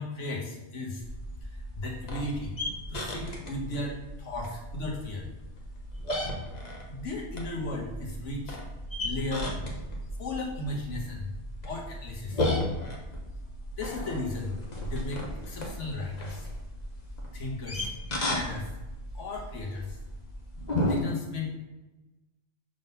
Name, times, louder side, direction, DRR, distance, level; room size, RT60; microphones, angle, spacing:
voice 1, 0.0-2.6 2.9-5.3 6.9-8.6 9.0-9.8 10.2-11.3 11.6-12.5 13.8-16.5 17.3-17.9 18.2-18.8 19.1-20.0 20.8-21.6, left 2 dB, 75° left, 0 dB, 1.6 m, -36 dB
sound 1, 1.0-21.0, left 1 dB, 35° left, 1.1 m, -35 dB
6.5 x 3.9 x 5.4 m, 1.1 s
omnidirectional pair, 1.3 m